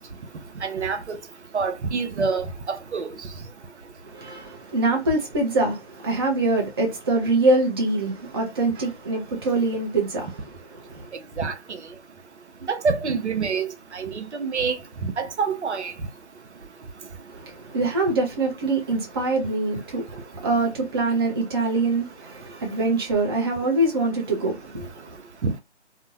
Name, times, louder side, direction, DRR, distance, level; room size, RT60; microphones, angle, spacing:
voice 1, 0.6-1.2 1.5-3.1 11.4-11.8 12.6-15.9 25.4-25.5, right 5 dB, 75° right, 0.7 m, -27 dB
voice 2, 4.0-10.5 10.7-11.1 17.3-25.2, right 2 dB, 20° right, 0.5 m, -24 dB
2.5 x 2.0 x 2.7 m
figure-of-eight pair, 145°, 34 cm